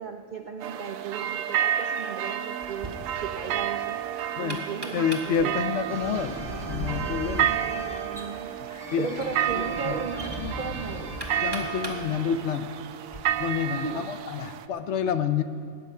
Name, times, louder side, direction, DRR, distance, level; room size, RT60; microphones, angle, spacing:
voice 1, 0.0-4.0 4.4-5.7 7.3-8.5 9.0-11.2 13.7-14.1, right 5 dB, 60° right, 5 dB, 0.5 m, -36 dB
sound 1, 0.6-14.6, right 10 dB, 75° right, 1.0 m, -31 dB
Knock, 2.6-13.2, right 1 dB, 20° right, 1.5 m, -43 dB
voice 2, 4.9-7.5 8.9-9.1 9.5-9.9 10.4-10.5 11.4-12.7 13.4-15.4, left 7 dB, 65° left, 11 dB, 0.8 m, -28 dB
sound 2, 5.9-11.7, equal, 10° left, 1.5 m, -37 dB
19.0 x 9.3 x 5.5 m, 2.2 s
omnidirectional pair, 1.4 m